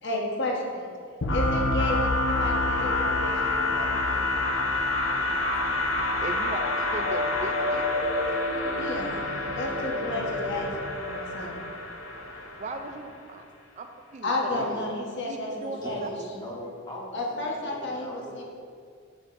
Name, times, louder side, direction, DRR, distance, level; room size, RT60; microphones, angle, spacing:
voice 1, 0.0-0.9 1.3-3.9 8.8-9.2 9.5-11.6 14.2-16.1 17.1-18.4, left 1 dB, 55° left, -1 dB, 1.1 m, -32 dB
sound 1, 1.2-13.0, left 2 dB, 75° left, 0.8 m, -27 dB
voice 2, 6.2-6.6 6.9-7.9 12.6-13.4 13.8-14.5 15.3-16.3, right 3 dB, 35° right, 5 dB, 0.4 m, -38 dB
voice 3, 14.5-14.8 15.8-18.4, left 1 dB, 20° left, -3 dB, 1.3 m, -40 dB
8.1 x 7.2 x 2.6 m, 2.1 s
head